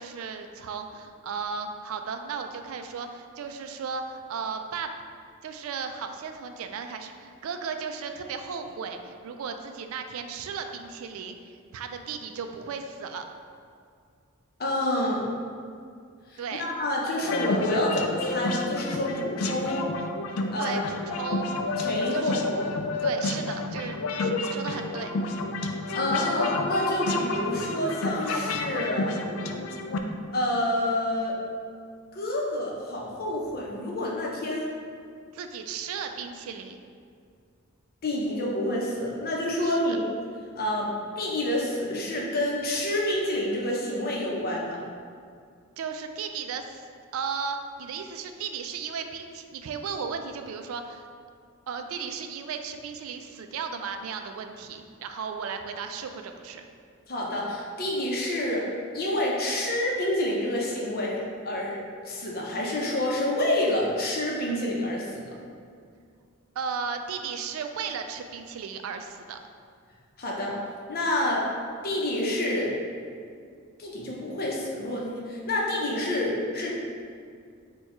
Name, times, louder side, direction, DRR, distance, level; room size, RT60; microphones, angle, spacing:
voice 1, 0.0-4.9 5.4-13.2 16.4-16.6 20.6-21.8 22.1-22.4 23.0-25.1 35.3-36.8 39.6-40.0 45.8-46.8 47.1-51.1 51.7-56.6 66.6-69.4, right 6 dB, 70° right, 6 dB, 0.3 m, -35 dB
voice 2, 14.6-15.3 16.3-19.9 20.5-20.8 21.8-22.7 25.9-29.2 30.3-31.4 32.1-34.7 38.0-40.0 40.6-44.8 57.1-58.7 58.9-61.8 62.0-65.2 70.2-70.6 70.9-71.4 71.8-72.7 73.8-76.8, left 1 dB, 45° left, -3 dB, 0.7 m, -28 dB
sound 1, 17.2-30.0, left 2 dB, 70° left, 0.3 m, -30 dB
4.5 x 2.3 x 4.3 m, 2.2 s
head